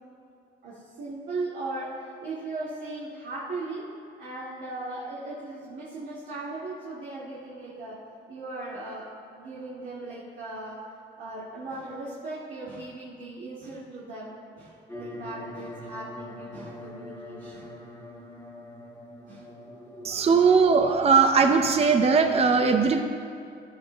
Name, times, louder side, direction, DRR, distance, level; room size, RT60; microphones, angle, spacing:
voice 1, 0.6-8.0 8.3-10.8 11.2-17.7 19.3-19.5 20.2-20.4, right 2 dB, 70° right, -9 dB, 2.0 m, -38 dB
sound 1, 14.9-20.5, left 1 dB, 10° left, 1.5 m, -42 dB
voice 2, 20.0-23.0, right 5 dB, 30° right, 5 dB, 0.6 m, -20 dB
15.5 x 12.0 x 2.2 m, 2.5 s
cardioid pair, 90°, 20 cm